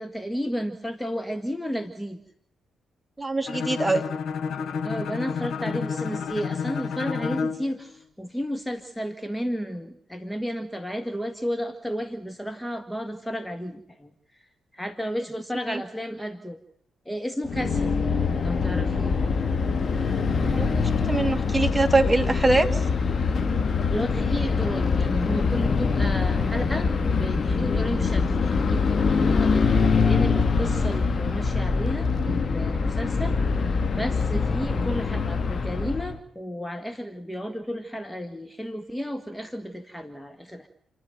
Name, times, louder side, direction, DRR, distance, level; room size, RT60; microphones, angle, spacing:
voice 1, 0.0-2.2 4.8-14.4 14.7-16.6 17.0-18.0 18.4-19.2 23.9-40.7, equal, 5° left, 9 dB, 1.6 m, -32 dB
voice 2, 3.2-4.0 15.7-15.8 20.5-20.7 21.1-22.7, right 2 dB, 10° right, 8 dB, 2.1 m, -22 dB
Bowed string instrument, 3.4-7.7, left 6 dB, 60° left, 1.3 m, -30 dB
sound 1, 17.4-36.2, left 5 dB, 45° left, 1.9 m, -24 dB
28.5 x 10.5 x 9.4 m, 0.67 s
hypercardioid pair, 40°, 0 cm